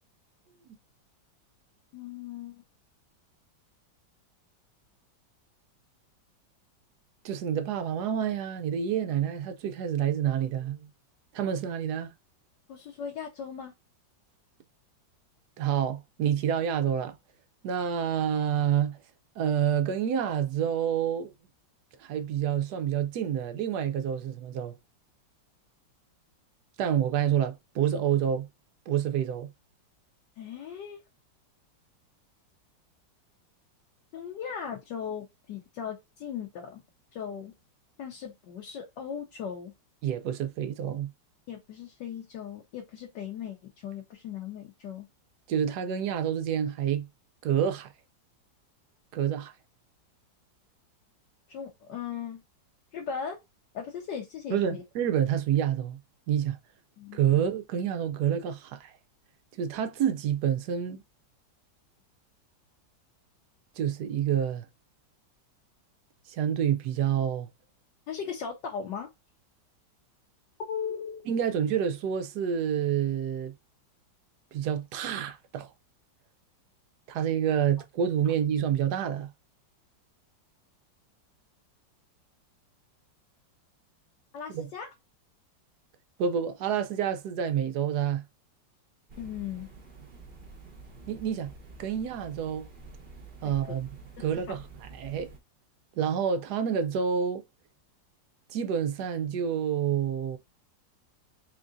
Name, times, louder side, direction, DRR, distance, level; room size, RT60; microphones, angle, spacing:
voice 1, 1.9-2.6 12.7-13.7 30.4-31.0 34.1-36.8 37.1-37.5 38.0-39.7 41.5-45.1 51.5-52.4 52.9-53.4 53.7-54.8 57.0-57.2 68.1-69.1 70.6-71.3 84.3-84.9 89.2-89.7 93.7-93.8 94.2-94.6, left 7 dB, 70° left, 1.5 m, -38 dB
voice 2, 7.2-10.9 11.3-12.1 15.6-17.2 17.6-19.0 19.4-21.3 22.0-24.8 26.8-28.5 28.9-29.5 40.0-41.1 45.5-47.1 47.4-47.9 49.1-49.5 54.5-56.0 56.3-56.6 57.1-58.9 59.6-61.0 63.8-64.7 66.3-67.5 71.3-73.5 74.5-75.7 77.1-79.3 84.5-84.7 86.2-88.2 91.1-91.5 91.8-92.7 93.4-93.9 94.2-95.3 96.0-97.4 98.5-100.4, right 9 dB, 70° right, 1.0 m, -28 dB
sound 1, 89.1-95.4, right 3 dB, 40° right, 0.8 m, -48 dB
3.8 x 3.5 x 2.5 m
omnidirectional pair, 2.0 m